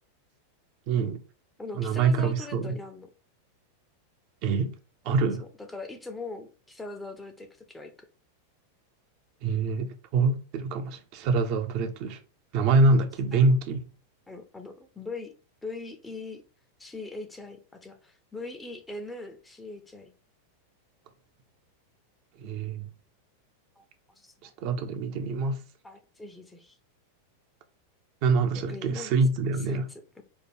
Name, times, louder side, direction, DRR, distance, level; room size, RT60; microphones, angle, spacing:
voice 1, 0.9-1.2 1.8-2.8 4.4-4.7 5.0-5.4 9.4-12.2 12.5-13.8 22.4-22.9 24.4-25.6 28.2-29.8, right 3 dB, 45° right, 0.6 m, -25 dB
voice 2, 1.6-3.1 5.4-8.1 13.3-13.6 14.3-15.4 15.6-16.4 16.8-20.1 23.8-24.5 25.8-26.8 28.5-29.1 29.7-30.2, left 3 dB, 10° left, 0.7 m, -41 dB
4.6 x 2.4 x 4.5 m
figure-of-eight pair, 90°, 0 cm